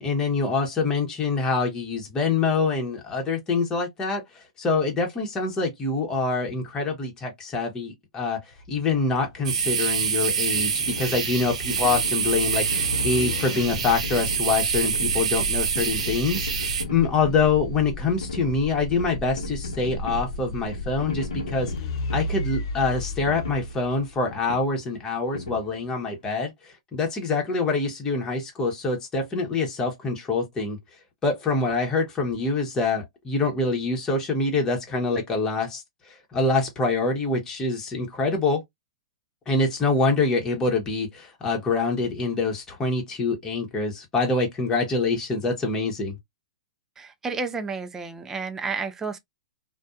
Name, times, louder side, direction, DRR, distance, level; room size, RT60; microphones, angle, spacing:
voice 1, 0.0-4.2 4.6-8.4 8.7-21.7 22.1-26.5 26.9-30.8 31.2-35.8 36.3-38.6 39.5-46.2, left 3 dB, 15° left, 0.9 m, -25 dB
sound 1, 8.5-24.5, left 1 dB, 55° left, 0.6 m, -35 dB
sound 2, 9.4-16.8, right 6 dB, 70° right, 0.7 m, -26 dB
sound 3, 10.5-26.2, left 4 dB, 90° left, 0.8 m, -39 dB
voice 2, 47.0-49.2, right 4 dB, 10° right, 0.4 m, -31 dB
2.5 x 2.2 x 2.2 m
hypercardioid pair, 135°, 4 cm